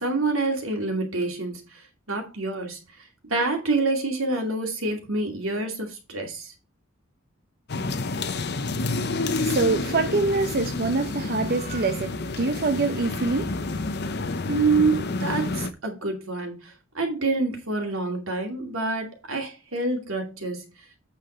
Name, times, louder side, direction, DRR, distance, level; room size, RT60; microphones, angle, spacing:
voice 1, 0.0-1.8 2.1-2.8 3.2-6.5 14.5-20.7, right 3 dB, 85° right, 2.6 m, -27 dB
sound 1, 7.7-15.7, left 3 dB, 55° left, 0.8 m, -29 dB
voice 2, 9.0-14.0, right 3 dB, 50° right, 0.7 m, -26 dB
8.4 x 5.8 x 4.4 m
head